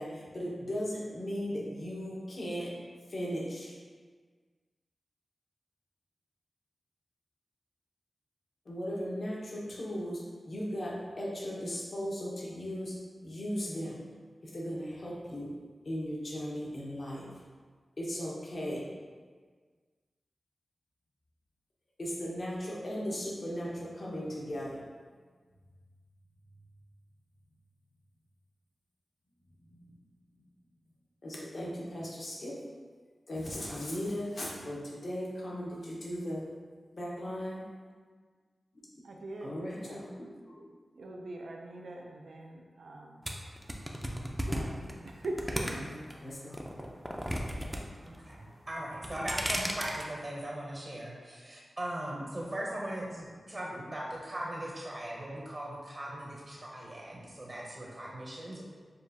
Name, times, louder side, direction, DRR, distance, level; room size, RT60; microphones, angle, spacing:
voice 1, 0.0-2.7 3.1-3.8 8.7-12.9 13.2-14.0 14.4-15.5 15.8-17.3 18.0-18.9 22.0-24.8 29.7-30.0 31.2-32.6 33.3-36.5 36.9-37.6 39.4-40.7 44.8-44.9 45.8-46.6, equal, 55° left, -5 dB, 1.0 m, -37 dB
voice 2, 39.0-40.0 40.9-43.2 44.5-45.9, right 2 dB, 80° right, 0 dB, 0.4 m, -42 dB
sound 1, 43.2-46.1 46.5-47.8 48.1-48.5 48.9-50.0, equal, 5° right, 0.5 m, -34 dB
voice 3, 48.0-58.6, right 1 dB, 40° right, -4 dB, 0.8 m, -39 dB
6.6 x 2.4 x 2.7 m, 1.5 s
wide cardioid pair, 65°, 0 cm